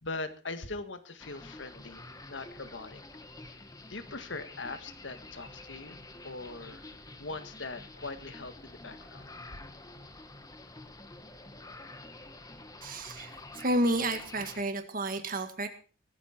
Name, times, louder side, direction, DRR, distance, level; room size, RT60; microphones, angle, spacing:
voice 1, 0.0-2.0 2.3-3.0 3.5-3.6 3.9-6.9 7.2-9.3, left 3 dB, 80° left, 9 dB, 1.8 m, -41 dB
sound 1, 1.2-14.6, left 2 dB, 20° left, 1.5 m, -48 dB
voice 2, 12.8-15.7, right 1 dB, 50° right, 7 dB, 1.9 m, -31 dB
19.5 x 13.5 x 4.5 m, 0.38 s
head